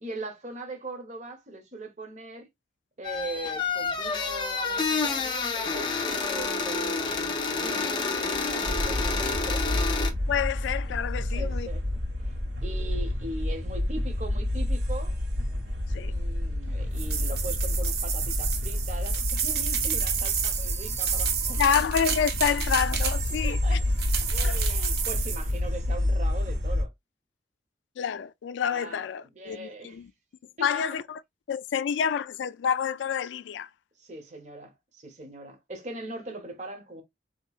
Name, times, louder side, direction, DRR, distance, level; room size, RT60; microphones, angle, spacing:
voice 1, 0.0-2.5 3.0-9.7 11.3-11.8 12.2-15.1 16.0-21.9 23.4-23.9 24.2-26.9 28.7-29.0 29.3-30.0 30.6-30.7 34.0-37.0, right 1 dB, 40° right, 0.9 m, -40 dB
sound 1, 3.0-10.1, left 4 dB, 25° left, 0.5 m, -29 dB
sound 2, 8.6-26.8, left 1 dB, 85° right, 1.4 m, -29 dB
voice 2, 10.3-11.7 15.9-16.1 21.6-23.8 24.4-24.6 28.0-30.1 30.6-31.2 31.5-33.7, left 7 dB, 90° left, 0.3 m, -28 dB
sound 3, 17.0-23.5 24.0-25.5, right 7 dB, 60° right, 0.6 m, -30 dB
3.7 x 2.9 x 2.3 m
head